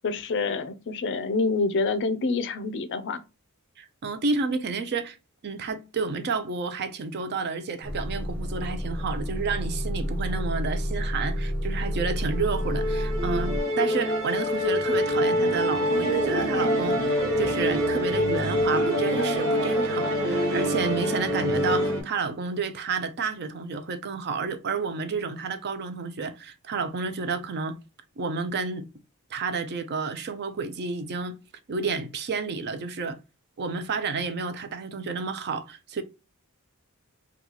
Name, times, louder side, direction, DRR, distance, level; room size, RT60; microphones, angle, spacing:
voice 1, 0.0-3.2, left 3 dB, 55° left, 0.4 m, -27 dB
voice 2, 3.8-5.2 5.4-27.8 28.2-28.9 29.3-31.4 31.7-33.2 33.6-36.0, right 4 dB, 50° right, 0.5 m, -30 dB
Motor vehicle (road) / Engine starting / Idling, 7.8-13.6, equal, 10° left, 0.6 m, -30 dB
Musical instrument, 11.9-22.0, equal, 65° right, 1.2 m, -25 dB
2.9 x 2.3 x 3.7 m
head